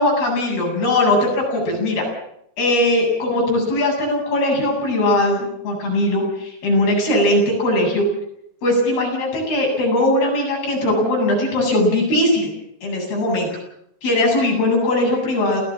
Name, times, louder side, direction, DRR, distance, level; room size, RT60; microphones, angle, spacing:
voice 1, 0.0-2.1 2.6-8.0 8.6-12.5 12.8-13.5 14.0-15.6, left 1 dB, 60° left, 0 dB, 10.0 m, -19 dB
28.5 x 18.0 x 7.4 m, 0.74 s
omnidirectional pair, 5.0 m